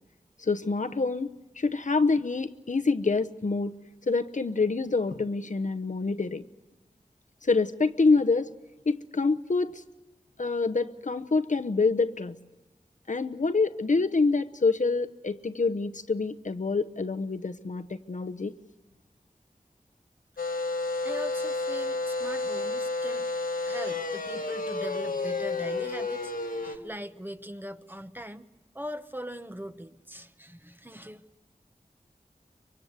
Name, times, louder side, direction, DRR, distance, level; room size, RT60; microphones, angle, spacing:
voice 1, 0.4-1.3 1.6-3.7 4.1-6.4 7.4-8.5 8.9-9.8 10.4-12.3 13.1-18.5, left 3 dB, 60° left, 9 dB, 0.9 m, -26 dB
sound 1, 20.4-26.8, left 3 dB, 80° left, 1.6 m, -31 dB
voice 2, 21.0-23.3 23.7-28.5 28.7-31.2, equal, 15° right, 9 dB, 1.0 m, -40 dB
24.0 x 24.0 x 8.0 m, 1.0 s
wide cardioid pair, 50°, 14 cm